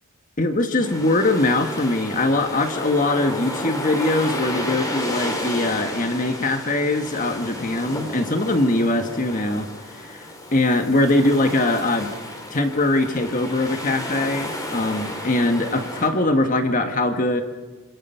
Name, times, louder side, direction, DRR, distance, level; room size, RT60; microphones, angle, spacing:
voice 1, 0.4-10.3 10.5-12.2 12.5-17.4, left 2 dB, 35° left, 6 dB, 1.6 m, -22 dB
sound 1, 0.8-16.1, left 1 dB, 15° left, 3.1 m, -32 dB
26.0 x 26.0 x 5.8 m, 1.3 s
head